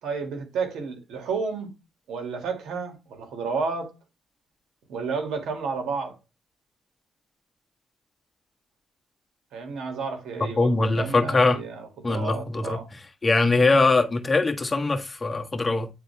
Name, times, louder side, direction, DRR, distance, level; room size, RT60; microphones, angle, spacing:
voice 1, 0.0-1.7 2.1-3.9 4.9-6.2 9.5-12.9, right 5 dB, 85° right, 2.4 m, -31 dB
voice 2, 10.6-11.6 12.0-12.8 13.2-15.9, left 3 dB, 30° left, 1.4 m, -22 dB
9.4 x 4.0 x 3.5 m
cardioid pair, 75°, 0 cm